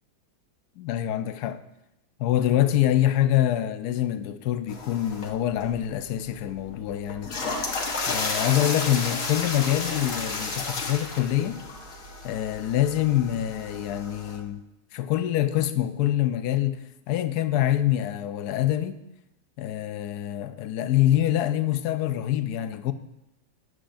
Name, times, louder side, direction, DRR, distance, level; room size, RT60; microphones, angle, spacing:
voice 1, 0.8-1.6 2.2-7.3 8.1-11.6 12.2-14.6 14.9-19.0 19.6-22.9, left 12 dB, 70° left, 1.0 m, -25 dB
sound 1, 4.7-14.4, left 3 dB, 50° left, 1.5 m, -33 dB
12.5 x 9.4 x 2.6 m
omnidirectional pair, 2.0 m